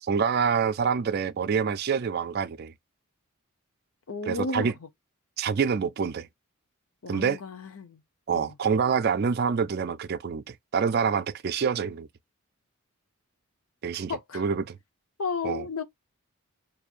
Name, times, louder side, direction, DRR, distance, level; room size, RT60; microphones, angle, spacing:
voice 1, 0.0-2.7 4.3-4.7 5.4-6.3 7.1-7.4 8.3-12.1 13.8-14.8 15.4-15.6, right 6 dB, 45° right, 0.3 m, -26 dB
voice 2, 4.1-4.9 7.0-8.0 8.3-8.5 11.6-11.8 14.1-14.4 15.2-15.8, left 4 dB, 75° left, 0.7 m, -33 dB
4.5 x 2.7 x 2.4 m
head